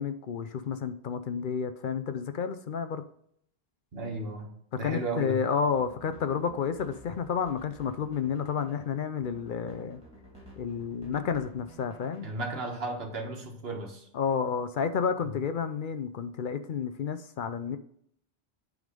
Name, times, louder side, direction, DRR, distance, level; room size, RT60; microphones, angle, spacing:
voice 1, 0.0-3.0 4.8-10.0 10.6-12.3 14.1-17.8, left 6 dB, 60° left, 10 dB, 0.6 m, -31 dB
voice 2, 3.9-5.4 12.2-14.1 15.2-15.3, right 2 dB, 70° right, 2 dB, 1.6 m, -35 dB
sound 1, 5.7-12.7, right 1 dB, 5° left, 2.7 m, -52 dB
9.3 x 3.7 x 5.1 m, 0.69 s
omnidirectional pair, 1.0 m